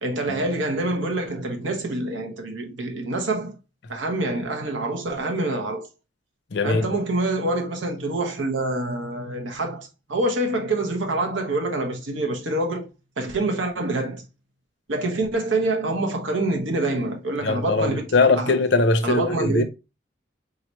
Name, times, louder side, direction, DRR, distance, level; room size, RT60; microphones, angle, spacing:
voice 1, 0.0-3.5 3.9-5.9 6.6-12.9 13.2-14.2 14.9-18.1 18.4-18.5 19.0-19.6, right 2 dB, 85° right, 1.0 m, -26 dB
voice 2, 6.5-6.9 17.4-19.6, left 3 dB, 70° left, 0.6 m, -21 dB
3.9 x 2.9 x 3.0 m
head